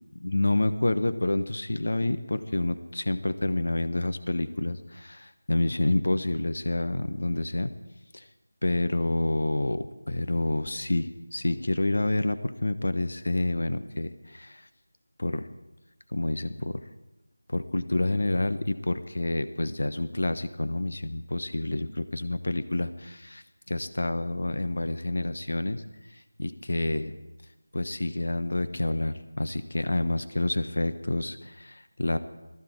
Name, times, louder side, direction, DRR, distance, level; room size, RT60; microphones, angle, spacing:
voice 1, 0.2-7.7 8.1-8.2 8.6-14.6 15.2-15.5 16.1-16.8 17.5-25.8 26.1-27.2 27.7-32.2, left 2 dB, 65° left, 11 dB, 1.0 m, -28 dB
19.0 x 14.5 x 4.6 m, 1.0 s
figure-of-eight pair, 170°, 0 cm